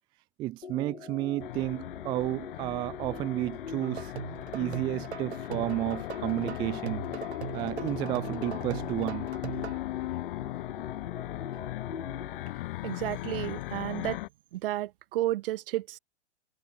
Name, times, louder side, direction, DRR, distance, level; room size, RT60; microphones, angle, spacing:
voice 1, 0.4-4.1 4.5-7.0 7.5-9.3, right 16 dB, 15° right, 0.3 m, -32 dB
sound 1, 0.6-12.5, left 5 dB, 85° left, 6.5 m, -43 dB
sound 2, 1.4-14.3, left 17 dB, 50° left, 1.6 m, -38 dB
sound 3, 3.8-9.8, right 8 dB, 70° right, 4.3 m, -40 dB
voice 2, 12.8-14.2 14.5-16.0, right 15 dB, 55° right, 1.1 m, -32 dB
hypercardioid pair, 110°, 34 cm